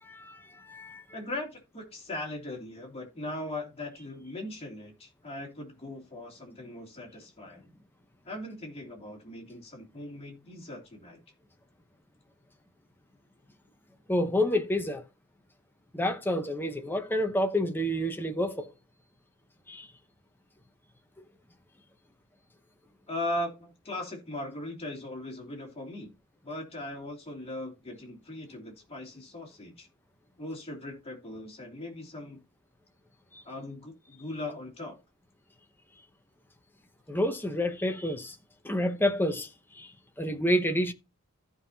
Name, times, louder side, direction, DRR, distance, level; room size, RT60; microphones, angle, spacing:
voice 1, 0.0-1.0 14.1-15.0 15.9-18.7 19.7-19.9 33.3-33.4 37.1-38.4 38.6-39.5 39.7-39.9 40.2-40.9, left 1 dB, 10° left, 0.9 m, -29 dB
voice 2, 1.1-7.7 8.2-11.2 23.1-26.1 26.4-29.9 30.4-32.4 33.4-35.0, left 1 dB, 30° left, 3.0 m, -39 dB
14.5 x 5.5 x 2.8 m
head